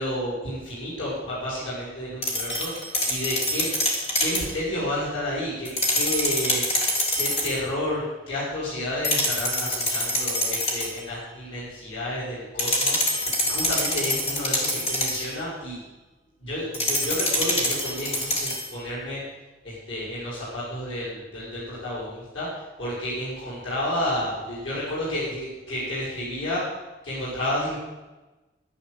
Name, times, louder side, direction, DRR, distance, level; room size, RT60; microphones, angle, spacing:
voice 1, 0.0-2.7 3.1-3.6 4.2-6.6 7.1-15.8 16.4-19.2 19.6-22.5 22.8-26.6 27.0-27.8, left 1 dB, 80° left, -9 dB, 6.1 m, -31 dB
sound 1, 2.2-4.5 5.6-7.6 9.0-11.0 12.6-15.3 16.7-18.7, left 1 dB, 30° left, 3.1 m, -25 dB
11.5 x 11.0 x 8.2 m, 1.1 s
head